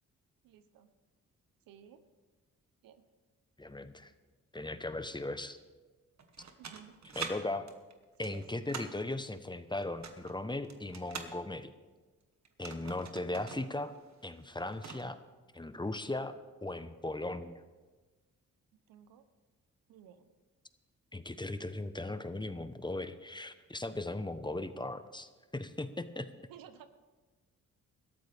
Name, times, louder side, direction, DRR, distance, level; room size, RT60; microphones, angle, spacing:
voice 1, 0.4-0.9 1.7-2.0 2.8-3.0 6.6-7.0 8.2-8.4 18.9-19.2 19.9-20.3 26.5-26.9, right 9 dB, 85° right, 11 dB, 1.0 m, -54 dB
voice 2, 3.6-4.1 4.5-5.6 7.1-7.7 8.2-11.7 12.6-13.9 14.2-15.2 15.5-17.6 21.1-26.3, left 2 dB, 15° left, 11 dB, 1.0 m, -38 dB
sound 1, 6.2-7.3 7.7-9.0 9.8-11.3 12.4-13.7 14.0-14.1 14.4-15.1, right 6 dB, 55° right, 1.6 m, -44 dB
20.5 x 13.0 x 3.5 m, 1.3 s
supercardioid pair, 50°, 34 cm